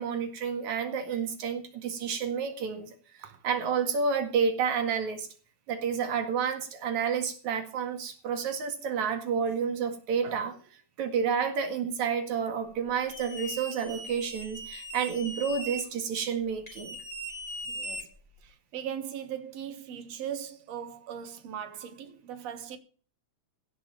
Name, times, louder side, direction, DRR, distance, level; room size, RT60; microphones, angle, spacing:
voice 1, 0.0-2.9 3.4-5.3 5.7-10.6 11.0-17.0, right 6 dB, 80° right, 3.3 m, -30 dB
sound 1, 13.1-15.8 16.7-18.5, right 1 dB, 15° left, 3.3 m, -39 dB
voice 2, 17.7-18.1 18.4-22.8, right 9 dB, 65° right, 2.6 m, -39 dB
16.5 x 6.2 x 7.5 m
omnidirectional pair, 3.3 m